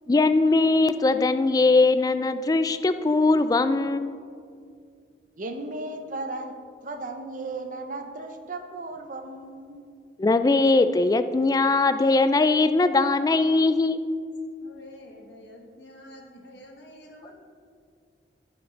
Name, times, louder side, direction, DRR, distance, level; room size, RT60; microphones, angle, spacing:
voice 1, 0.1-4.1 10.2-14.0, left 3 dB, 20° left, 11 dB, 0.3 m, -20 dB
voice 2, 5.4-6.5 6.8-9.9, right 2 dB, 45° right, 6 dB, 0.7 m, -35 dB
voice 3, 14.6-17.3, left 1 dB, 65° left, 0 dB, 1.5 m, -47 dB
14.5 x 5.2 x 4.4 m, 2.3 s
head